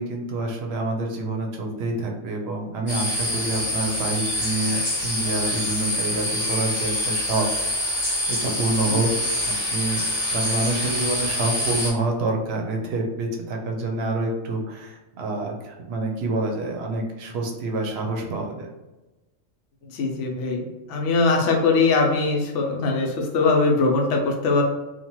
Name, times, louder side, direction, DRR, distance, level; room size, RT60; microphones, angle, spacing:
voice 1, 0.0-7.5 8.3-9.1 9.5-10.0 10.3-18.7, right 2 dB, 65° right, 1 dB, 0.7 m, -27 dB
sound 1, 2.9-11.9, left 1 dB, 20° left, 0.9 m, -26 dB
voice 2, 19.8-24.6, left 3 dB, 75° left, 1 dB, 0.9 m, -21 dB
2.8 x 2.2 x 2.9 m, 1.1 s
omnidirectional pair, 1.3 m